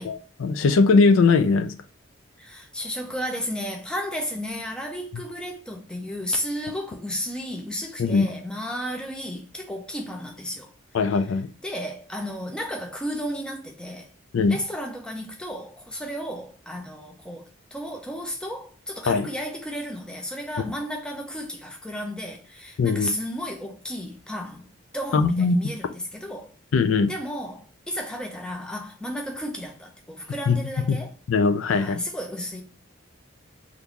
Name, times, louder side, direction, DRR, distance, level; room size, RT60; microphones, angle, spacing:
voice 1, 0.0-1.7 8.0-8.3 10.9-11.5 14.3-14.6 19.1-19.3 22.8-23.1 25.1-25.6 26.7-27.1 30.5-30.6 30.9-31.0 31.3-32.0, left 4 dB, 80° left, 0.4 m, -20 dB
voice 2, 2.4-10.7 11.6-14.1 14.5-26.5 27.1-31.1 31.7-32.6, equal, 5° left, 0.5 m, -33 dB
3.6 x 2.5 x 2.8 m
head